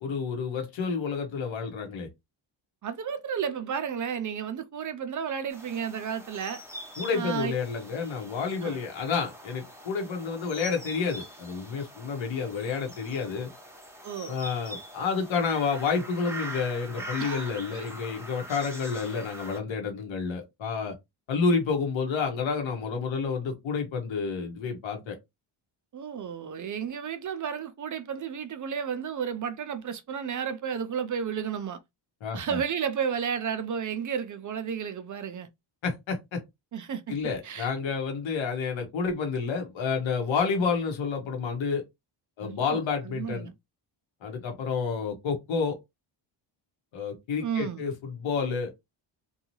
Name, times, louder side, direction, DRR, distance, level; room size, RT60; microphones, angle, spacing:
voice 1, 0.0-2.1 7.0-13.5 14.3-21.0 21.3-25.2 32.2-32.6 35.8-36.4 37.1-41.8 42.4-43.5 44.2-45.8 46.9-48.7, left 5 dB, 70° left, 1.0 m, -29 dB
voice 2, 2.8-6.6 7.1-7.5 8.6-8.8 14.0-14.3 17.2-17.9 25.9-31.8 32.3-35.5 36.7-37.2 37.4-37.7 42.4-43.5 47.4-47.9, right 7 dB, 40° right, 0.4 m, -32 dB
sound 1, 5.5-19.6, right 1 dB, 5° right, 0.8 m, -43 dB
2.7 x 2.3 x 3.0 m
wide cardioid pair, 130°, 48 cm